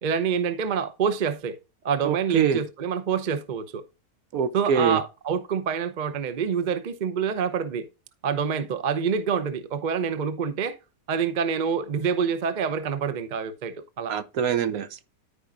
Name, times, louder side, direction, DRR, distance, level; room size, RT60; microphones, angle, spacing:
voice 1, 0.0-1.6 1.8-3.8 4.5-7.9 8.2-10.8 11.1-14.2, right 6 dB, 45° right, 0.6 m, -27 dB
voice 2, 2.0-2.6 4.3-5.0 14.1-15.0, right 8 dB, 70° right, 1.1 m, -24 dB
13.5 x 4.9 x 2.5 m
omnidirectional pair, 1.7 m